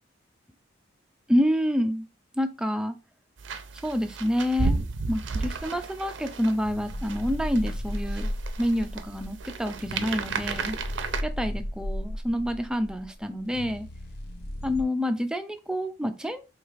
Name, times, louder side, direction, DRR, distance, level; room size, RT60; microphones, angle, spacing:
voice 1, 1.3-2.1 2.4-3.0 3.8-4.8 5.1-10.8 11.2-13.9 14.6-16.5, equal, 5° right, 8 dB, 0.4 m, -28 dB
sound 1, 3.4-11.2, right 4 dB, 70° right, 0.5 m, -33 dB
sound 2, 6.6-14.8, equal, 55° left, 0.7 m, -35 dB
4.8 x 3.2 x 2.5 m, 0.29 s
head